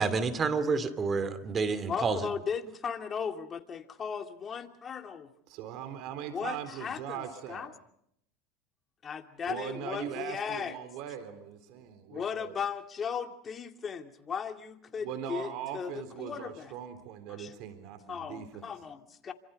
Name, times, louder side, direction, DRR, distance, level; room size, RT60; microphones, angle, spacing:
voice 1, 0.0-2.2, right 4 dB, 30° right, 13 dB, 2.5 m, -29 dB
voice 2, 1.9-5.3 6.3-7.2 7.5-7.7 9.0-10.8 12.1-16.7 17.4-17.5 18.1-19.3, left 6 dB, 30° left, 6 dB, 2.4 m, -36 dB
voice 3, 5.5-7.7 9.5-12.5 15.0-18.7, right 9 dB, 65° right, 9 dB, 4.0 m, -40 dB
28.5 x 26.0 x 5.4 m, 0.73 s
supercardioid pair, 110°, 0 cm